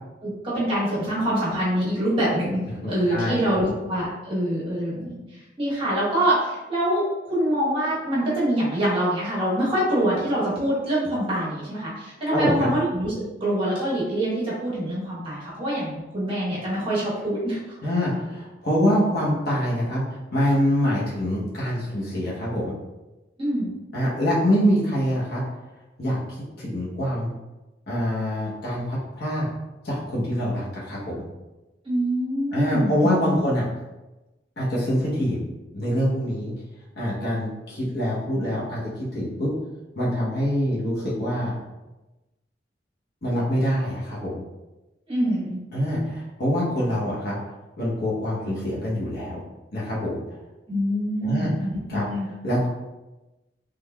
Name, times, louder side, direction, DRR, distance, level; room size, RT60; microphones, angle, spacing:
voice 1, 0.2-17.6 23.4-23.7 31.8-33.4 45.1-45.6 50.7-52.3, right 1 dB, 30° right, -8 dB, 1.1 m, -25 dB
voice 2, 2.8-3.7 12.3-12.7 17.8-22.8 23.9-25.4 26.0-26.2 26.6-27.3 27.9-29.5 29.8-31.2 32.5-33.6 34.6-35.4 35.7-36.5 37.0-39.5 40.0-41.6 43.2-44.4 45.7-47.4 47.8-49.4 49.7-50.2 51.2-51.5 51.9-52.0 52.4-52.7, equal, 60° left, -6 dB, 0.9 m, -25 dB
3.6 x 3.4 x 2.3 m, 1.1 s
head